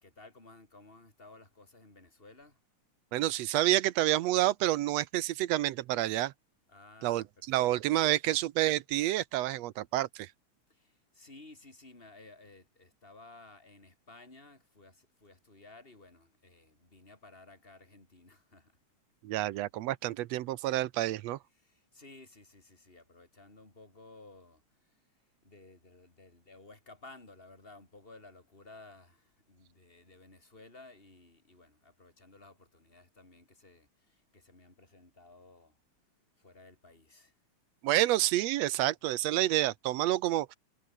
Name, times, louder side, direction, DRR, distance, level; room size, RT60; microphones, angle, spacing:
voice 1, 0.0-2.6 6.7-7.7 10.7-18.8 21.5-25.0 25.4-35.8 36.4-37.4, left 2 dB, 15° left, 5.1 m, -55 dB
voice 2, 3.1-6.3 7.0-10.3 19.2-21.4 37.8-40.5, right 15 dB, 70° right, 1.7 m, -29 dB
omnidirectional pair, 3.5 m